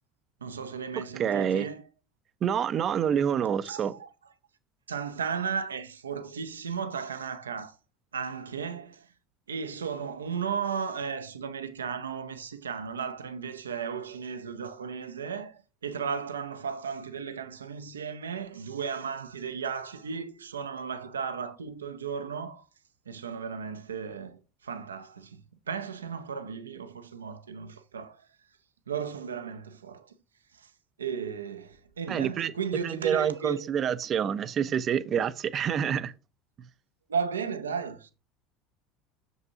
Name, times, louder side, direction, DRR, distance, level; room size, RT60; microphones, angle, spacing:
voice 1, 0.4-1.8 3.6-4.1 4.9-7.7 8.1-9.1 9.5-22.6 23.1-25.4 25.7-28.2 28.9-30.1 30.5-30.7 31.0-33.7 37.1-38.1, right 6 dB, 80° right, 0.6 m, -35 dB
voice 2, 1.0-1.7 2.4-3.9 32.1-32.5 32.8-36.1, right 8 dB, 40° right, 0.5 m, -27 dB
6.8 x 5.5 x 2.7 m
figure-of-eight pair, 70°, 0 cm